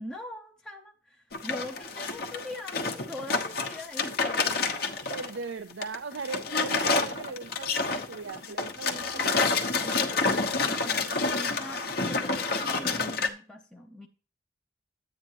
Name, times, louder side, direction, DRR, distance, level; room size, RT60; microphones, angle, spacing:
voice 1, 0.0-4.6 8.9-14.1, left 1 dB, 5° left, 0.7 m, -42 dB
sound 1, 1.3-5.4 5.7-13.3, left 4 dB, 55° left, 1.0 m, -28 dB
voice 2, 5.1-9.6, right 4 dB, 80° right, 0.5 m, -39 dB
10.0 x 8.8 x 2.9 m
head